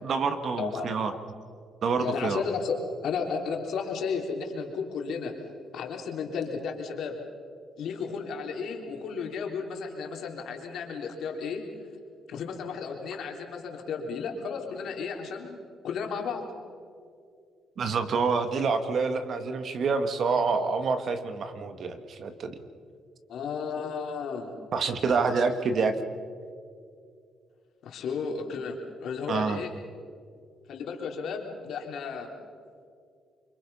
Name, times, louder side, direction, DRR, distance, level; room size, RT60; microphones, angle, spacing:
voice 1, 0.0-1.1 1.8-2.4 17.8-22.6 24.7-25.9 29.3-29.6, right 4 dB, 60° right, 9 dB, 1.8 m, -27 dB
voice 2, 0.6-0.9 2.0-5.3 5.7-7.2 7.8-11.6 12.3-16.4 23.3-24.5 25.3-25.5 27.8-29.7 30.7-32.3, left 5 dB, 75° left, 2 dB, 3.6 m, -33 dB
28.0 x 24.5 x 5.6 m, 2.3 s
cardioid pair, 90°, 0 cm